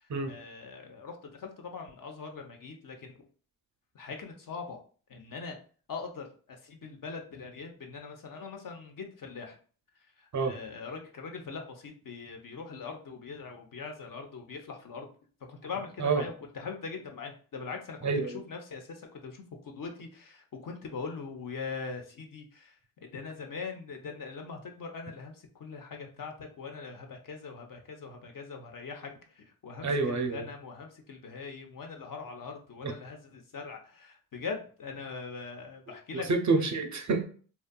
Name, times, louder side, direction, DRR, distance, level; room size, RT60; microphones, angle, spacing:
voice 1, 0.0-3.2 3.9-4.8 5.1-5.6 5.9-9.6 10.2-15.1 15.5-22.7 23.0-36.3 36.5-36.7, left 5 dB, 50° left, 3 dB, 0.7 m, -42 dB
voice 2, 18.0-18.4 29.8-30.5 32.8-32.9 36.3-37.2, right 4 dB, 40° right, 5 dB, 0.5 m, -28 dB
2.6 x 2.3 x 2.2 m, 0.42 s
supercardioid pair, 40°, 44 cm